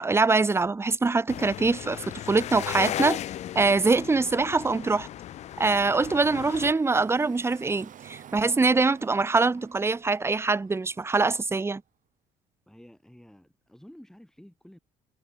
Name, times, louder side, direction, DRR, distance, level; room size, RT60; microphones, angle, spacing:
voice 1, 0.0-3.2 3.5-5.1 5.6-11.8, right 3 dB, 15° right, 0.7 m, -24 dB
sound 1, 1.3-6.7, left 12 dB, 40° left, 0.4 m, -36 dB
Car passing by / Traffic noise roadway noise, 4.8-11.8, right 9 dB, 50° right, 3.0 m, -51 dB
voice 2, 12.7-14.8, equal, 5° left, 5.4 m, -51 dB
hypercardioid pair, 55°, 17 cm